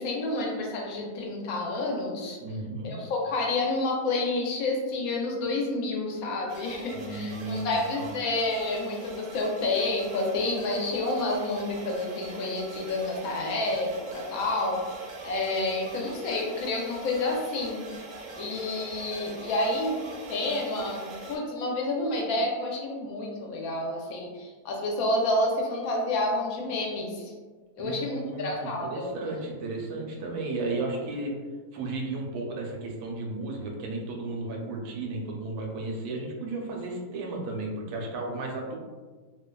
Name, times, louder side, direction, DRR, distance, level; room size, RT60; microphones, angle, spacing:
voice 1, 0.0-2.4 2.8-14.8 15.2-17.8 18.4-20.0 20.3-21.0 21.3-27.3 27.8-29.1, left 2 dB, 70° left, 0 dB, 1.0 m, -29 dB
voice 2, 2.4-3.0 6.9-8.1 27.8-31.3 31.7-38.8, right 2 dB, 85° right, 0 dB, 1.1 m, -34 dB
sound 1, 6.5-21.4, right 2 dB, 70° right, 0.8 m, -43 dB
2.8 x 2.2 x 2.2 m, 1.4 s
omnidirectional pair, 1.6 m